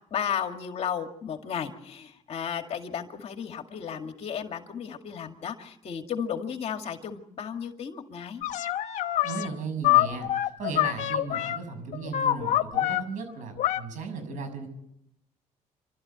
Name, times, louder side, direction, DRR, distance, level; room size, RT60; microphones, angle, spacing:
voice 1, 0.1-8.4, left 7 dB, 50° left, 5 dB, 2.1 m, -34 dB
sound 1, 8.4-9.5 9.8-11.6 11.9-13.0 13.6-13.8, left 14 dB, 70° left, 1.1 m, -25 dB
voice 2, 9.2-14.7, right 4 dB, 75° right, 7 dB, 6.6 m, -36 dB
27.5 x 13.0 x 8.1 m, 0.80 s
cardioid pair, 105°, 13 cm